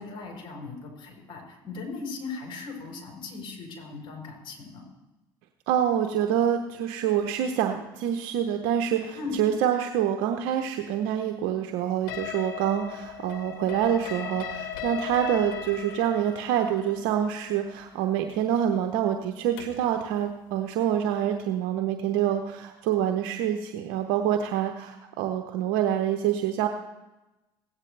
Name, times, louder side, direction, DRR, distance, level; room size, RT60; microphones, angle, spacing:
voice 1, 0.0-4.8 9.1-9.4, left 4 dB, 50° left, 0 dB, 4.5 m, -38 dB
voice 2, 5.7-26.7, right 10 dB, 75° right, 5 dB, 0.8 m, -26 dB
sound 1, 12.1-19.9, left 10 dB, 80° left, 1.2 m, -38 dB
17.0 x 9.1 x 3.3 m, 1.0 s
hypercardioid pair, 75°, 11 cm